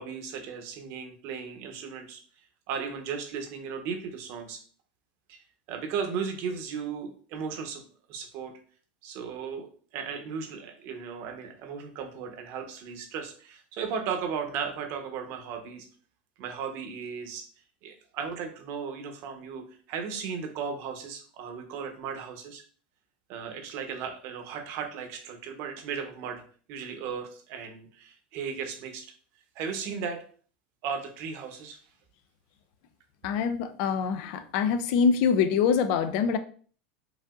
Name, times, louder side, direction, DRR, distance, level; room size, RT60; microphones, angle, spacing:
voice 1, 0.0-2.2 2.7-4.6 5.3-7.8 8.1-8.5 9.0-9.7 9.9-15.9 16.4-17.4 17.8-22.6 23.3-26.4 26.7-29.1 29.5-30.2 30.8-31.8, right 6 dB, 55° right, 0.9 m, -36 dB
voice 2, 33.2-36.4, left 6 dB, 60° left, 0.5 m, -24 dB
4.8 x 2.7 x 2.4 m
hypercardioid pair, 110°, 5 cm